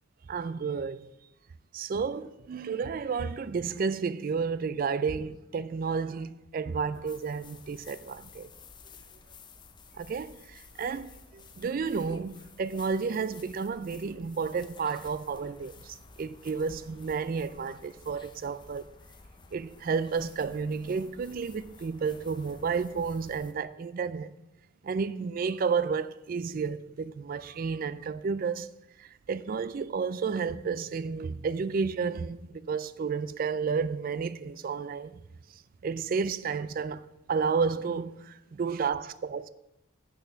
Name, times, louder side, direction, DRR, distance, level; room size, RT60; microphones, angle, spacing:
voice 1, 0.3-1.1 1.7-8.5 10.0-18.9 19.5-24.3 24.8-28.7 29.0-35.1 35.8-39.5, right 5 dB, 45° right, 0.3 m, -31 dB
sound 1, 6.7-23.5, left 3 dB, 20° left, 0.5 m, -52 dB
8.6 x 5.7 x 6.7 m
head